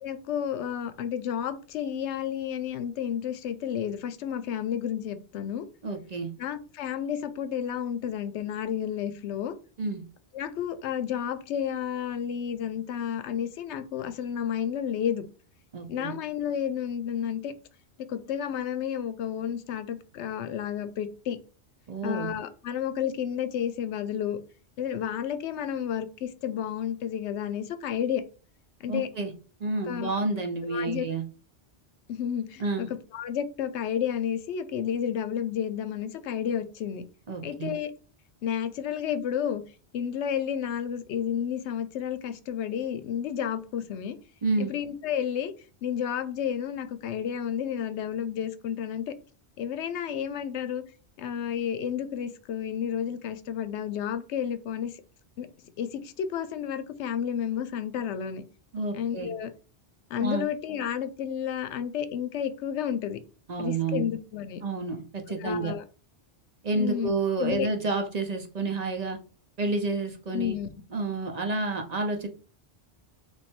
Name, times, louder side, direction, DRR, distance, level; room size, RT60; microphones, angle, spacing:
voice 1, 0.0-5.7 6.4-9.5 10.3-15.2 15.9-17.5 18.0-21.4 22.0-24.4 24.8-28.2 28.8-29.1 29.9-30.2 30.7-31.1 32.1-37.0 37.4-37.9 38.4-39.6 39.9-44.2 44.6-45.5 45.8-49.1 49.6-50.8 51.2-55.0 55.4-58.4 58.9-59.5 60.1-63.2 63.6-64.6 65.4-65.8 66.7-67.1 67.4-67.7 70.3-70.7, left 9 dB, 85° left, 0.9 m, -31 dB
voice 2, 5.8-6.3 9.8-10.0 15.7-16.1 21.9-22.3 28.9-29.3 29.6-31.2 32.6-32.9 37.3-37.7 44.4-44.7 58.7-59.3 60.2-60.5 63.5-64.0 64.6-65.7 66.6-69.2 69.6-70.6 70.9-72.3, right 3 dB, 45° right, 0.6 m, -29 dB
3.2 x 3.2 x 4.3 m
omnidirectional pair, 1.1 m